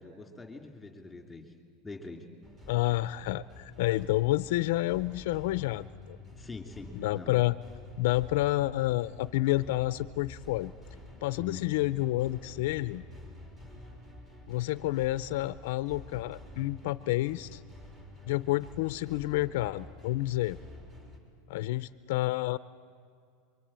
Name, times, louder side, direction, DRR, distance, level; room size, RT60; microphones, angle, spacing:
voice 1, 0.0-1.5 1.8-2.2 6.4-7.3 11.4-11.6, left 2 dB, 5° left, 4 dB, 3.2 m, -44 dB
sound 1, 2.4-21.2, left 1 dB, 15° right, 3.8 m, -49 dB
voice 2, 2.7-6.2 6.9-7.6 8.0-10.7 11.2-13.0 14.5-17.6 18.3-20.6 21.5-22.6, left 17 dB, 65° left, 15 dB, 0.6 m, -29 dB
28.5 x 23.5 x 8.9 m, 2.3 s
supercardioid pair, 155°, 0 cm